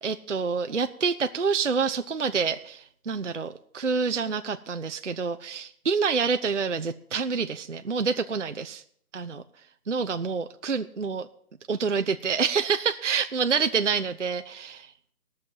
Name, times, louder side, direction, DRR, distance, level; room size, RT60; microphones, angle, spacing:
voice 1, 0.0-8.8 9.1-9.4 9.9-11.3 11.7-15.1, right 5 dB, 50° right, 9 dB, 0.5 m, -27 dB
17.5 x 6.3 x 7.2 m, 0.65 s
hypercardioid pair, 180°, 47 cm